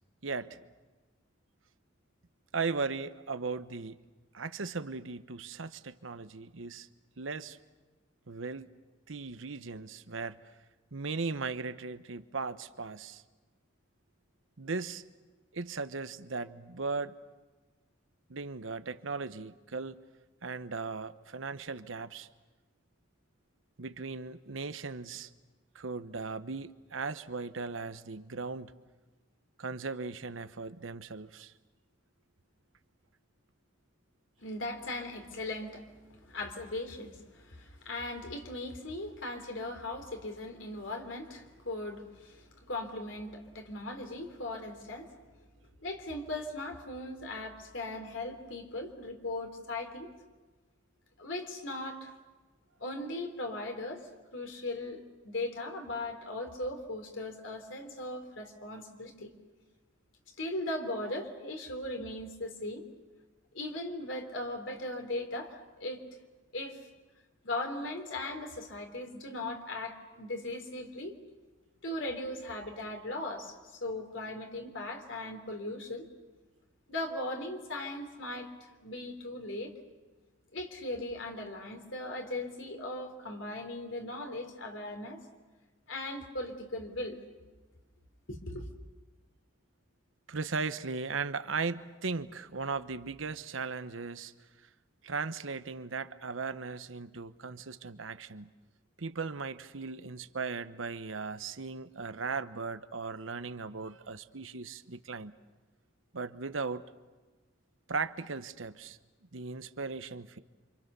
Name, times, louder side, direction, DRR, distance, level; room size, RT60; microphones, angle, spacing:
voice 1, 0.2-0.6 2.5-4.0 4.3-6.9 7.2-7.6 8.3-8.7 9.1-10.4 10.9-13.2 14.6-15.0 15.5-17.1 18.3-20.0 20.4-22.3 23.8-25.3 25.7-28.7 29.6-31.5 90.3-94.3 95.0-98.5 99.0-105.3 106.1-106.9 107.9-109.0 109.3-110.4, right 4 dB, 85° right, 12 dB, 1.0 m, -37 dB
voice 2, 34.4-45.1 45.8-50.1 51.2-52.1 52.8-59.3 60.4-62.9 63.5-66.0 66.5-66.8 67.4-71.1 71.8-76.1 76.9-78.5 78.8-79.7 80.5-85.2 85.9-87.2 88.3-88.7, left 2 dB, 70° left, 4 dB, 3.4 m, -38 dB
29.0 x 26.0 x 6.9 m, 1.3 s
head